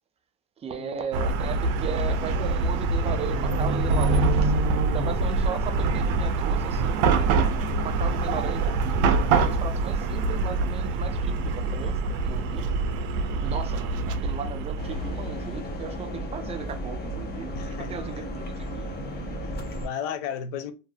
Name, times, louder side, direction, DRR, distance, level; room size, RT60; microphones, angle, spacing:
voice 1, 0.6-7.4 7.8-12.7 13.4-18.9, right 6 dB, 15° right, 0.4 m, -37 dB
Chatter / Car passing by / Traffic noise roadway noise, 1.1-15.4, right 3 dB, 55° right, 0.7 m, -25 dB
voice 2, 13.3-13.7 17.5-18.2 19.4-20.7, left 6 dB, 60° left, 0.7 m, -35 dB
sound 1, 14.8-19.9, equal, 25° left, 0.6 m, -34 dB
3.1 x 2.5 x 2.3 m
supercardioid pair, 110°, 40 cm